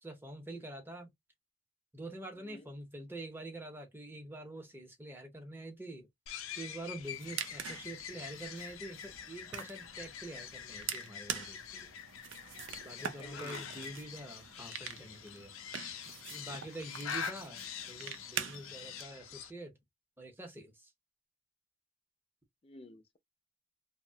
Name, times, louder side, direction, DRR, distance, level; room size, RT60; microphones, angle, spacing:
voice 1, 0.0-1.1 1.9-6.1 6.6-11.9 12.8-15.5 16.3-17.6 17.9-19.8 20.2-20.9, right 1 dB, 10° right, 0.7 m, -46 dB
sound 1, 6.3-19.5, left 8 dB, 90° left, 0.5 m, -45 dB
sound 2, 7.0-19.0, right 8 dB, 60° right, 0.5 m, -45 dB
voice 2, 13.0-13.7 19.1-19.4 22.6-23.2, left 1 dB, 30° left, 0.5 m, -53 dB
2.8 x 2.1 x 2.7 m
head